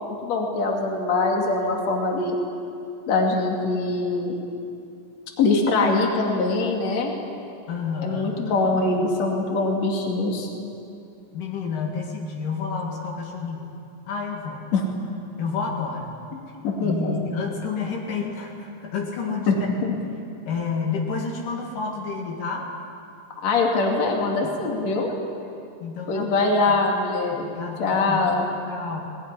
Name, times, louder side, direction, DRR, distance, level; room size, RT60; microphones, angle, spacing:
voice 1, 0.1-2.4 3.1-4.4 5.4-7.1 8.0-10.5 14.7-14.8 16.3-17.1 19.5-19.6 23.4-25.1 26.1-27.4 27.8-28.5, left 3 dB, 55° left, 0 dB, 3.6 m, -23 dB
voice 2, 7.7-8.4 11.3-13.7 14.1-14.7 15.4-16.1 16.8-19.7 20.5-22.7 24.4-24.6 25.8-26.8 27.4-28.4 28.7-29.0, left 5 dB, 75° left, -1 dB, 3.7 m, -30 dB
20.0 x 19.5 x 9.8 m, 2.5 s
omnidirectional pair, 3.8 m